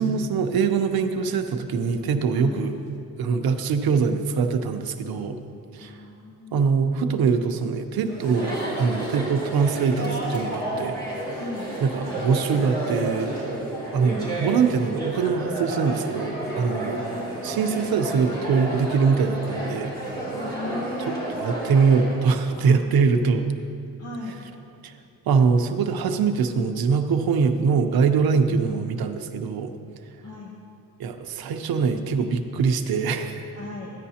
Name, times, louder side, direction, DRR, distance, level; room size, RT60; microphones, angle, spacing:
voice 1, 0.0-2.7 3.2-5.4 5.7-6.0 6.5-11.4 11.8-13.4 13.9-17.0 17.4-20.0 21.1-23.5 24.8-24.9 25.3-29.7 31.0-33.5, right 5 dB, 80° right, 7 dB, 0.7 m, -23 dB
voice 2, 5.8-7.0 11.3-11.7 16.8-17.8 20.3-21.3 22.5-23.0 24.0-24.4 28.3-28.9 30.2-30.5 33.5-33.9, left 2 dB, 40° left, -3 dB, 1.1 m, -37 dB
Chatter, 8.0-22.2, right 1 dB, 10° left, 2.8 m, -31 dB
14.0 x 10.0 x 2.8 m, 2.5 s
wide cardioid pair, 155°, 36 cm